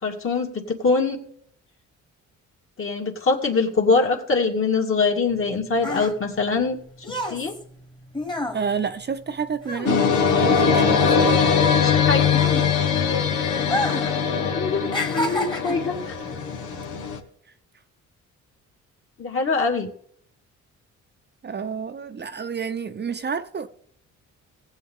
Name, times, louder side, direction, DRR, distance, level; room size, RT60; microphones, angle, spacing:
voice 1, 0.0-1.2 2.8-6.8 7.3-7.5 11.8-12.3 14.5-14.8 15.1-16.2 19.2-19.9, left 4 dB, 45° left, 2.6 m, -23 dB
sound 1, 5.3-10.7 10.9-13.1 13.6-14.2 14.5-15.9 16.6-16.8, left 1 dB, 15° left, 1.6 m, -30 dB
voice 2, 8.5-11.5 21.4-23.7, right 6 dB, 35° right, 0.8 m, -30 dB
sound 2, 9.9-17.2, left 6 dB, 85° left, 1.7 m, -21 dB
18.5 x 8.4 x 3.7 m
cardioid pair, 90°, 30 cm